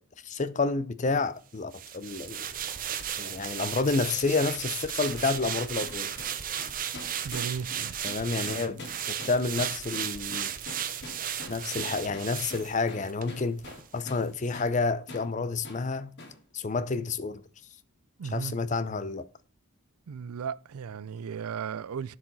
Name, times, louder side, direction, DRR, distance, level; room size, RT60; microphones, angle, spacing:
voice 1, 0.2-2.5 3.2-6.1 8.0-8.8 9.1-10.5 11.5-13.6 13.9-16.1 16.5-17.4 18.2-19.3, left 3 dB, 35° left, 0.5 m, -29 dB
sound 1, 1.7-13.3 13.6-13.8, right 9 dB, 40° right, 0.7 m, -35 dB
sound 2, 5.0-14.3 14.5-14.7 15.1-15.3 15.6-15.8 16.2-16.4, left 2 dB, 50° left, 2.2 m, -44 dB
voice 2, 7.2-7.9 18.2-18.5 20.1-22.2, right 6 dB, 85° right, 0.4 m, -35 dB
11.0 x 4.8 x 4.0 m
head